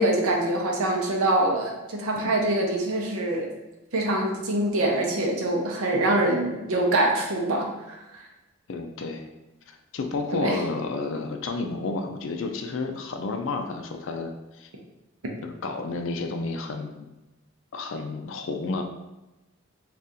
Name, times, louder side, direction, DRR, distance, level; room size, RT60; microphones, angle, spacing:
voice 1, 0.0-3.5 3.9-8.0 10.3-10.6, right 1 dB, 85° right, 1 dB, 0.7 m, -24 dB
voice 2, 8.7-9.2 9.9-14.7 15.4-17.0 17.7-18.8, left 3 dB, 65° left, 5 dB, 0.4 m, -31 dB
2.7 x 2.4 x 3.6 m, 1.0 s
head